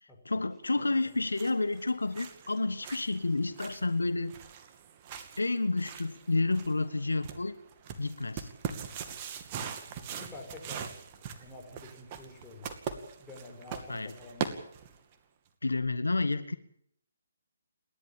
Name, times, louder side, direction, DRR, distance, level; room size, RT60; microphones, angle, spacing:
voice 1, 0.0-4.3 5.4-7.6 8.0-8.5 13.9-14.1 15.6-16.5, left 3 dB, 85° left, 13 dB, 1.4 m, -30 dB
sound 1, 1.0-15.1, right 7 dB, 30° right, 2.4 m, -42 dB
voice 2, 9.7-10.9 11.4-14.5, left 2 dB, 10° left, 0 dB, 6.2 m, -48 dB
29.5 x 12.0 x 9.0 m, 0.68 s
figure-of-eight pair, 145°, 0 cm